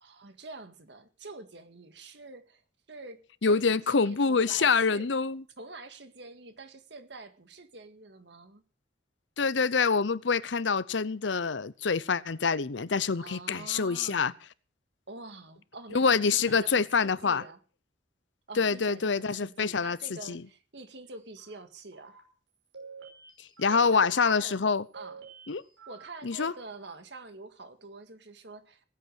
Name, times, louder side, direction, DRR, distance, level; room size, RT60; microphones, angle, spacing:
voice 1, 0.0-2.6 2.9-5.1 5.6-8.6 13.2-14.4 15.1-17.6 18.5-22.2 23.7-24.6 24.9-25.3 25.9-28.8, right 3 dB, 65° right, 1.9 m, -46 dB
voice 2, 3.4-5.4 9.4-14.3 15.9-17.4 18.6-20.4 23.6-24.8 25.5-25.6 26.2-26.5, left 5 dB, 75° left, 0.7 m, -26 dB
sound 1, 21.4-21.6 21.9-22.2 22.7-23.8 24.1-24.4 24.9-26.0 26.3-26.6, right 5 dB, 80° right, 5.5 m, -49 dB
19.0 x 8.5 x 6.4 m
head